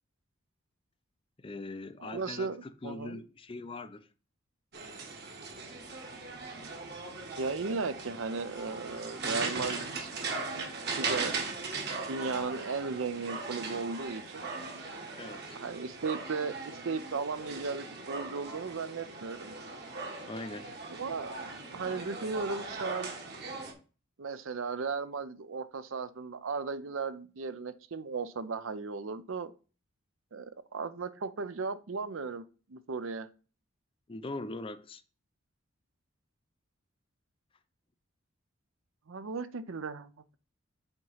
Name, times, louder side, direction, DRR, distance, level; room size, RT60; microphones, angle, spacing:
voice 1, 1.4-4.1 15.2-15.6 20.3-20.8 34.1-35.0, left 2 dB, 25° left, 0.5 m, -41 dB
voice 2, 2.0-2.6 2.8-3.2 7.4-10.1 11.0-11.4 12.1-14.5 15.3-19.6 20.9-21.4 21.7-23.2 24.2-29.5 30.3-32.4 32.7-33.3 39.1-40.4, right 4 dB, 75° right, 0.6 m, -36 dB
sound 1, 4.7-23.7, right 3 dB, 50° right, 1.4 m, -39 dB
7.8 x 3.0 x 5.5 m
head